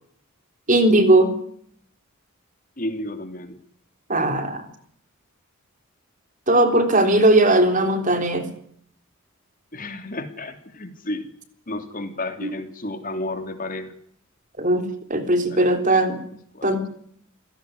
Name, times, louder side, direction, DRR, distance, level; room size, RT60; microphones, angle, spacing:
voice 1, 0.7-1.3 4.1-4.7 6.5-8.4 12.4-12.5 14.6-14.8 15.1-16.2 16.6-16.9, right 1 dB, 35° right, 7 dB, 3.6 m, -18 dB
voice 2, 2.8-3.6 7.6-8.1 9.7-11.3 11.7-13.9 15.5-16.7, left 1 dB, 40° left, 7 dB, 3.2 m, -33 dB
28.0 x 17.5 x 9.8 m, 0.66 s
head